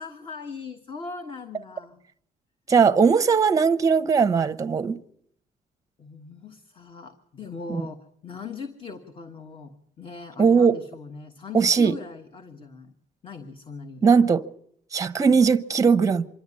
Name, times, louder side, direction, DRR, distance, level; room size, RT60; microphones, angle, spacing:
voice 1, 0.0-2.0 6.0-12.9 13.2-14.0, left 4 dB, 30° left, 1.3 m, -40 dB
voice 2, 2.7-5.0 7.7-7.9 10.4-10.8 11.5-12.0 14.0-14.4 14.9-16.3, right 5 dB, 20° right, 0.8 m, -19 dB
25.5 x 12.0 x 9.7 m
cardioid pair, 155°, 17 cm